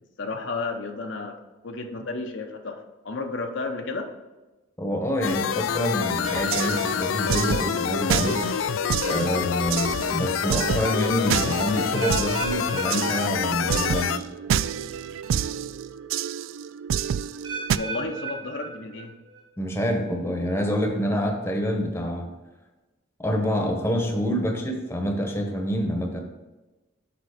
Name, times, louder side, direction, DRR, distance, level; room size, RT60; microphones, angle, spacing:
voice 1, 0.2-1.4 1.6-2.8 3.0-4.1 17.7-19.1, left 3 dB, 70° left, 4 dB, 0.7 m, -32 dB
voice 2, 4.8-8.4 9.0-14.2 19.6-22.3 23.2-26.2, equal, 15° left, 3 dB, 1.0 m, -27 dB
sound 1, 5.2-14.2, left 8 dB, 90° left, 0.4 m, -27 dB
sound 2, 6.2-17.8, right 8 dB, 80° right, 0.3 m, -29 dB
sound 3, 12.0-14.0 14.2-14.7 15.3-15.4 17.4-19.4 19.7-20.2 20.8-20.9, right 4 dB, 25° right, 1.2 m, -37 dB
6.9 x 5.1 x 5.0 m, 1.1 s
head